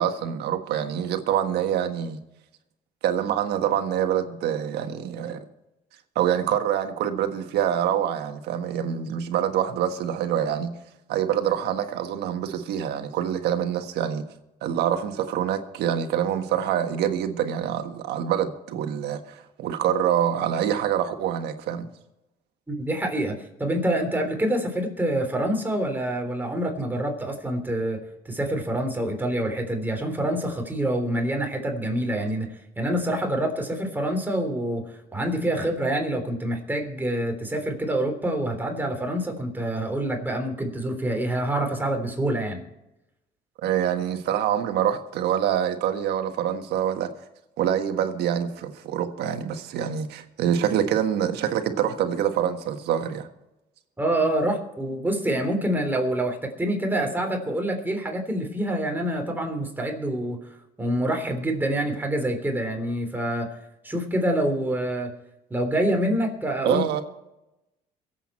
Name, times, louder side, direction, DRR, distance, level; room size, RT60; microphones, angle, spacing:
voice 1, 0.0-2.2 3.0-5.4 6.1-10.7 11.1-14.2 14.6-21.9 43.6-47.1 47.6-53.3 66.6-67.0, right 9 dB, 80° right, 1.5 m, -25 dB
voice 2, 22.7-42.6 54.0-60.4 60.8-63.5 63.8-65.1 65.5-66.8, right 1 dB, 10° right, 3.5 m, -26 dB
23.5 x 8.2 x 4.4 m
cardioid pair, 110°, 17 cm